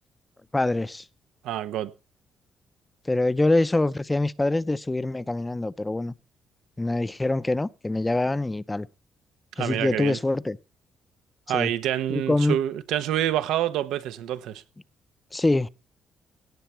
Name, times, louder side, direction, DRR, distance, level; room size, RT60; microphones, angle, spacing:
voice 1, 0.5-1.0 3.1-6.1 6.8-8.9 9.6-10.6 11.5-11.7 12.1-12.6 15.3-15.7, left 2 dB, 15° left, 0.6 m, -24 dB
voice 2, 1.4-1.9 9.6-10.2 11.5-14.6, right 12 dB, 90° right, 0.9 m, -27 dB
17.5 x 7.0 x 4.5 m
cardioid pair, 90°, 0 cm